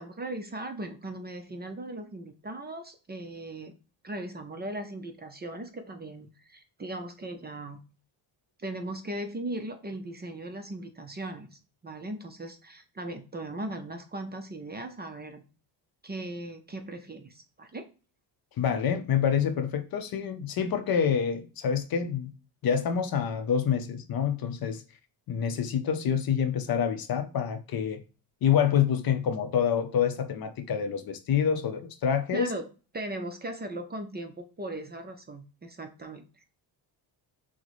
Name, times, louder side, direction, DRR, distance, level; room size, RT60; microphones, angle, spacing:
voice 1, 0.0-3.7 4.0-7.8 8.6-15.4 16.0-17.9 32.3-32.7 32.9-36.4, right 1 dB, 20° right, 0.5 m, -38 dB
voice 2, 18.6-22.3 22.6-24.8 25.3-28.0 28.4-32.5, left 8 dB, 50° left, 0.6 m, -27 dB
6.2 x 2.1 x 3.1 m
cardioid pair, 115°, 46 cm